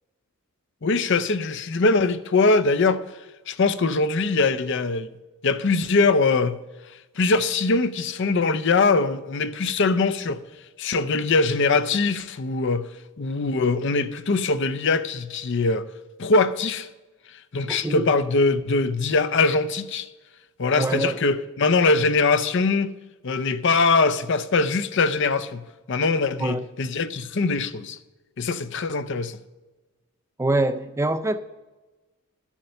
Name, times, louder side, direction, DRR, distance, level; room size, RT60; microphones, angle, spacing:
voice 1, 0.8-5.1 5.4-6.6 6.8-10.4 10.8-12.9 13.2-15.9 16.2-16.9 17.3-20.1 20.6-22.9 23.2-28.0 28.4-29.4, left 3 dB, 55° left, 0.6 m, -22 dB
voice 2, 17.7-18.1 20.8-21.2 26.4-26.6 30.4-31.4, right 2 dB, 10° right, 0.3 m, -24 dB
12.0 x 7.3 x 6.6 m
head